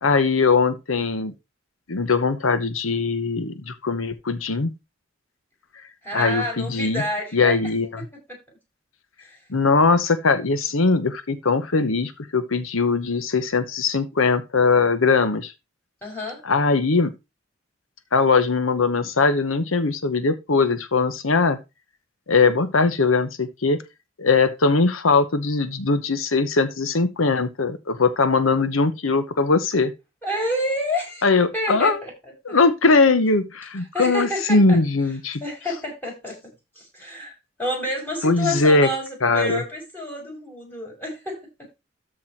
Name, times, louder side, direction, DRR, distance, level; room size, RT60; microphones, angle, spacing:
voice 1, 0.0-1.3 1.9-4.7 6.1-7.0 7.3-8.1 9.5-15.5 16.4-17.1 18.1-21.6 22.3-23.8 24.2-29.9 31.2-32.0 32.4-35.4 38.2-38.9 39.2-39.6, left 4 dB, 90° left, 1.0 m, -20 dB
voice 2, 6.0-7.6 8.0-8.1 9.3-9.4 16.0-16.4 30.2-31.3 31.5-32.1 32.5-32.6 33.9-34.8 35.4-36.4 36.8-41.4, left 1 dB, 10° left, 6.3 m, -29 dB
13.5 x 4.7 x 4.6 m
head